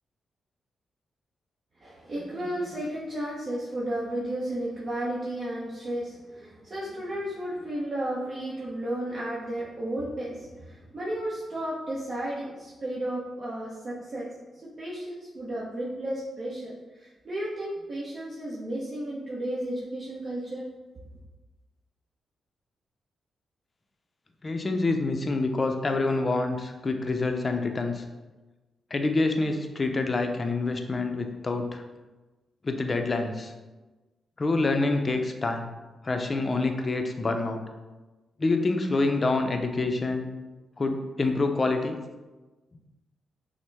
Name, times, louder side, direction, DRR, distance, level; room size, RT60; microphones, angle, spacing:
voice 1, 1.8-14.3 14.8-20.7, right 1 dB, 50° right, -7 dB, 0.9 m, -33 dB
voice 2, 24.4-28.0 28.9-31.8 32.6-33.5 34.4-35.7 36.0-37.6 38.4-40.3 40.8-42.0, left 3 dB, 40° left, 5 dB, 0.5 m, -27 dB
6.0 x 2.1 x 3.4 m, 1.2 s
cardioid pair, 60°, 0 cm